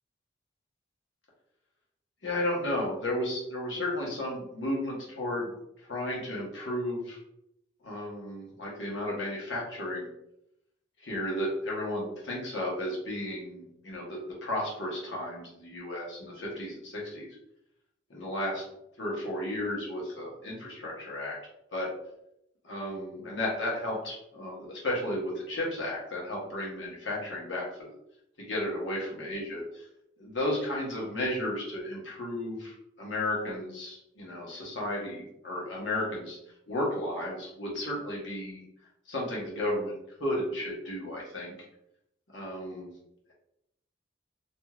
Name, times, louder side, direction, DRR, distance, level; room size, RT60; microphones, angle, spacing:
voice 1, 2.2-5.5 5.9-7.2 7.8-10.1 11.0-17.3 18.1-18.6 19.0-21.4 21.7-21.9 22.6-27.9 28.4-29.9 30.2-36.4 36.7-38.6 39.1-39.9 40.2-41.5 42.3-42.9, left 1 dB, 70° left, -4 dB, 1.0 m, -33 dB
2.9 x 2.6 x 2.3 m, 0.79 s
head